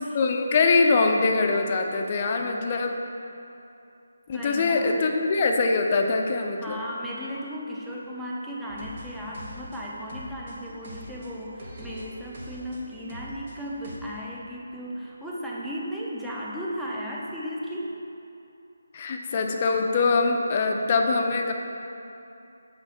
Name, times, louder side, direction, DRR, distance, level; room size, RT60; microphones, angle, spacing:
voice 1, 0.1-2.9 4.3-6.8 18.9-21.5, left 3 dB, 35° left, 3 dB, 0.6 m, -23 dB
voice 2, 4.3-5.2 6.6-17.9, equal, 5° right, -6 dB, 0.7 m, -35 dB
sound 1, 8.7-14.0, equal, 45° right, 1.2 m, -43 dB
8.0 x 3.3 x 5.8 m, 2.7 s
figure-of-eight pair, 150°, 0 cm